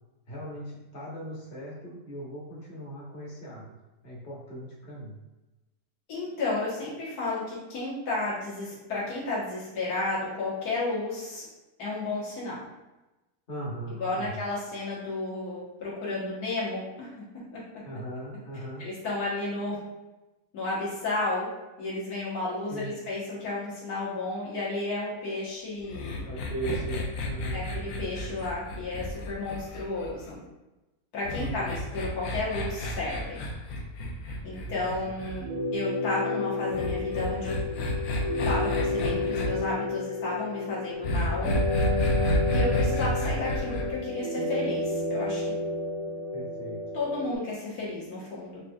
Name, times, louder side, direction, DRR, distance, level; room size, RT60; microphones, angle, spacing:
voice 1, 0.3-3.7 4.0-5.2 13.5-14.4 17.8-18.8 22.7-23.0 26.2-27.7 31.4-31.8 34.7-35.2 46.3-46.8, right 2 dB, 40° left, -5 dB, 1.2 m, -38 dB
voice 2, 6.1-11.5 11.8-12.6 14.0-17.1 17.5-17.8 18.8-19.8 20.5-21.5 21.8-26.3 27.5-30.4 31.1-33.4 34.4-35.5 35.7-37.5 38.4-41.5 42.5-45.5 46.9-48.6, left 2 dB, 85° left, -7 dB, 1.7 m, -32 dB
sound 1, 25.9-30.3 31.2-35.4 36.7-39.5 41.0-43.8, left 1 dB, 70° left, 1.0 m, -30 dB
sound 2, 35.4-47.4, left 2 dB, 80° right, 1.4 m, -31 dB
4.7 x 2.8 x 2.3 m, 1.0 s
omnidirectional pair, 1.6 m